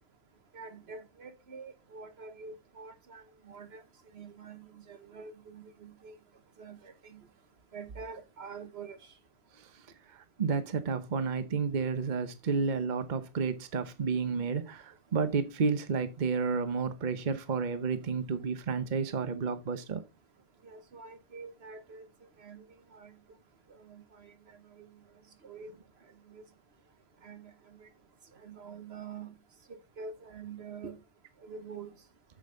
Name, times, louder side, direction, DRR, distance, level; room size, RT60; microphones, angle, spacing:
voice 1, 0.5-3.8 4.1-6.2 6.6-7.2 7.7-9.0 20.6-22.1 22.4-22.7 22.9-23.1 23.8-24.3 24.8-24.9 25.4-25.7 26.3-26.4 27.2-27.5 27.8-27.9 28.4-29.3 29.7-31.0 31.4-31.9, right 5 dB, 70° right, 1.3 m, -46 dB
voice 2, 10.1-20.0, right 5 dB, 45° right, 1.0 m, -31 dB
9.1 x 7.5 x 3.8 m
omnidirectional pair, 1.1 m